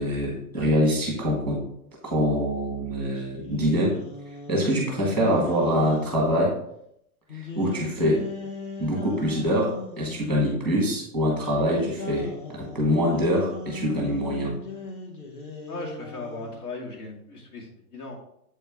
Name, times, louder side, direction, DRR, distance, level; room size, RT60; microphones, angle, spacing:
voice 1, 0.0-1.6 2.0-4.0 4.5-6.6 7.3-8.2 8.8-14.5, equal, ahead, -2 dB, 1.0 m, -24 dB
sound 1, 3.2-6.4 7.3-10.3 11.4-16.6, left 4 dB, 35° left, 0.9 m, -38 dB
voice 2, 15.7-18.2, left 3 dB, 85° left, -1 dB, 2.4 m, -37 dB
7.6 x 4.3 x 3.5 m, 0.74 s
hypercardioid pair, 180°, 44 cm